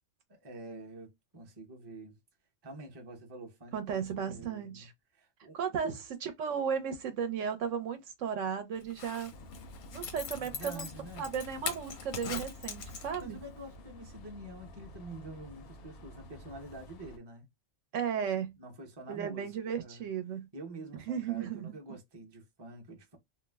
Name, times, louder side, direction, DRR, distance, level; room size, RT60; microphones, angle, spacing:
voice 1, 0.3-2.2 2.6-5.6 5.8-6.0 10.4-11.3 13.2-17.5 18.6-20.0 20.5-23.2, right 2 dB, 25° right, 0.6 m, -47 dB
voice 2, 3.7-4.9 5.5-5.9 6.2-9.3 9.9-10.9 11.2-13.4 17.9-18.6 19.1-20.5 21.1-21.7, right 7 dB, 75° right, 1.0 m, -35 dB
Zipper (clothing), 8.8-13.4 13.8-13.9, left 6 dB, 85° left, 1.0 m, -41 dB
sound 1, 9.3-17.2, left 1 dB, 60° left, 0.7 m, -50 dB
2.5 x 2.0 x 3.2 m
omnidirectional pair, 1.3 m